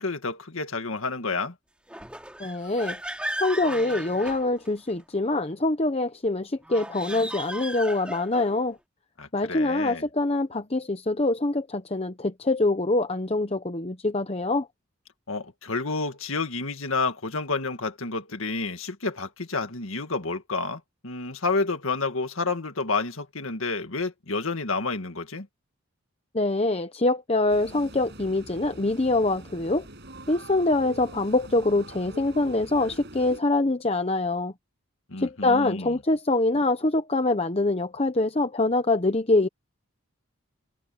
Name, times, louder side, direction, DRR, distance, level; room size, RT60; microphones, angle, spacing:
voice 1, 0.0-1.5 9.2-10.0 15.3-25.5 35.1-36.0, left 3 dB, 70° left, 1.9 m, -30 dB
sound 1, 1.9-5.0 6.6-8.6, right 1 dB, 5° right, 3.5 m, -36 dB
voice 2, 2.4-3.0 3.4-8.8 9.3-14.7 26.3-29.8 30.3-34.5 35.2-39.5, left 2 dB, 30° left, 0.9 m, -24 dB
sound 2, 27.5-33.4, right 1 dB, 55° right, 6.0 m, -44 dB
head